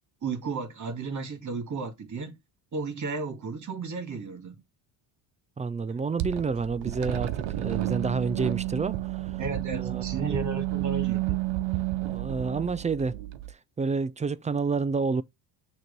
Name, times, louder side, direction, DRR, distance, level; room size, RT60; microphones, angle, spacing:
voice 1, 0.2-2.4 2.7-4.6 9.4-11.4, right 4 dB, 40° right, 2.0 m, -34 dB
voice 2, 5.6-9.0 9.7-10.0 12.0-13.2 13.8-15.2, right 4 dB, 20° right, 0.3 m, -29 dB
sound 1, 6.2-13.5, right 16 dB, 75° right, 1.0 m, -31 dB
6.4 x 3.1 x 5.2 m
cardioid pair, 100°, 46 cm